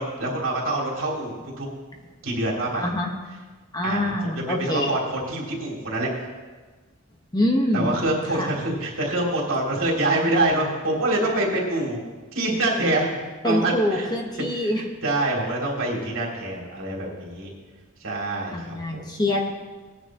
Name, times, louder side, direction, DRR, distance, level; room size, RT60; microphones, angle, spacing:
voice 1, 0.0-1.7 2.2-2.9 3.8-6.1 7.7-12.0 12.3-13.2 13.4-14.1 14.4-17.5 18.0-19.0, right 2 dB, 75° right, -3 dB, 3.0 m, -26 dB
voice 2, 2.7-3.1 3.7-4.9 7.3-8.0 8.4-8.5 13.4-14.8 18.5-19.4, left 1 dB, 20° left, 1 dB, 1.3 m, -25 dB
18.5 x 9.9 x 3.0 m, 1.3 s
head